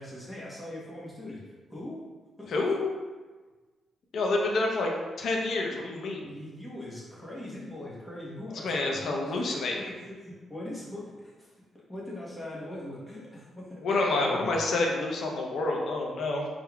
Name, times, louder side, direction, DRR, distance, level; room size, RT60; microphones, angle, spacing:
voice 1, 0.0-2.0 2.4-2.5 6.2-11.5 11.9-13.8 14.1-14.6, left 1 dB, 10° left, -6 dB, 1.1 m, -41 dB
voice 2, 2.5-2.8 4.1-4.9 5.2-6.2 8.6-9.9 13.8-16.5, left 2 dB, 60° left, 0 dB, 0.7 m, -28 dB
4.2 x 3.8 x 2.3 m, 1.3 s
cardioid pair, 135°, 0 cm